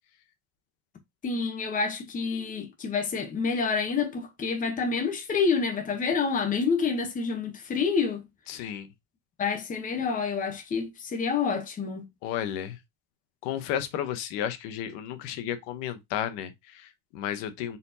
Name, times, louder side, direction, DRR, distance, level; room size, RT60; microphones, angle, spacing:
voice 1, 1.2-8.2 9.4-12.1, left 5 dB, 20° left, 0.8 m, -28 dB
voice 2, 8.5-8.9 12.2-12.8 13.4-17.8, left 10 dB, 70° left, 1.0 m, -33 dB
4.2 x 4.1 x 2.7 m
cardioid pair, 155°, 44 cm